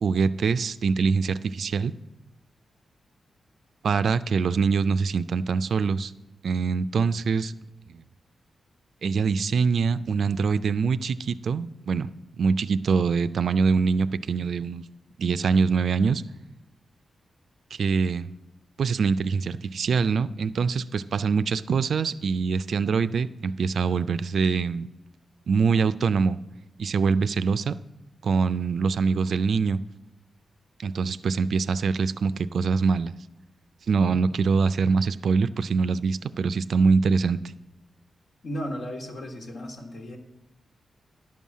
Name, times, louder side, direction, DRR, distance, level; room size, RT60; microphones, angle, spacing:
voice 1, 0.0-1.9 3.8-6.1 6.4-7.5 7.9-8.0 9.0-12.1 12.4-14.8 15.2-16.2 17.7-18.3 18.8-24.9 25.5-26.4 26.8-27.7 28.2-29.8 30.8-33.1 33.9-37.4, right 5 dB, 65° right, 15 dB, 0.3 m, -24 dB
voice 2, 38.4-40.2, equal, 75° left, 1 dB, 1.7 m, -35 dB
10.5 x 5.5 x 7.3 m, 0.98 s
wide cardioid pair, 105°, 0 cm